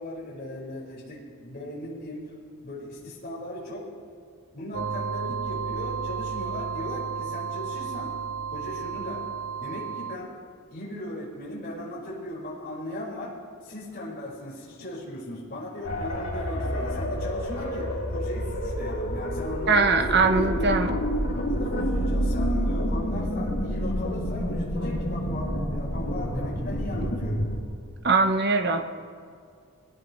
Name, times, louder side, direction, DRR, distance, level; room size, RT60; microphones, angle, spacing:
voice 1, 0.0-2.2 2.6-3.9 4.5-8.1 8.5-9.2 9.6-10.3 10.7-13.3 13.6-20.5 21.3-27.4, left 1 dB, 45° left, -7 dB, 5.0 m, -37 dB
sound 1, 4.7-10.2, right 6 dB, 80° right, 0.9 m, -32 dB
sound 2, 15.8-27.6, equal, 65° left, 2.8 m, -28 dB
voice 2, 19.7-21.0 28.0-28.8, right 4 dB, 45° right, 6 dB, 1.0 m, -21 dB
24.0 x 18.0 x 3.2 m, 2.3 s
head